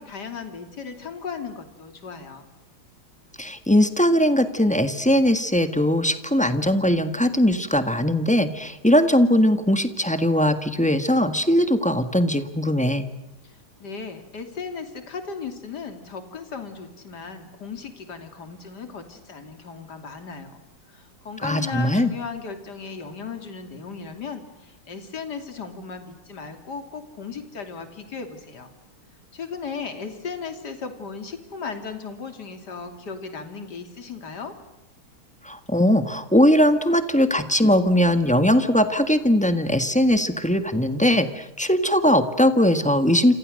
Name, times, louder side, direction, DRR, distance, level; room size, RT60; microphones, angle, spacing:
voice 1, 0.0-2.4 13.4-20.6 20.9-28.7 29.3-34.5, left 5 dB, 50° left, 7 dB, 3.4 m, -36 dB
voice 2, 3.4-13.1 21.4-22.1 35.4-43.3, equal, 5° left, 9 dB, 1.2 m, -20 dB
28.5 x 27.5 x 6.5 m, 0.98 s
omnidirectional pair, 2.4 m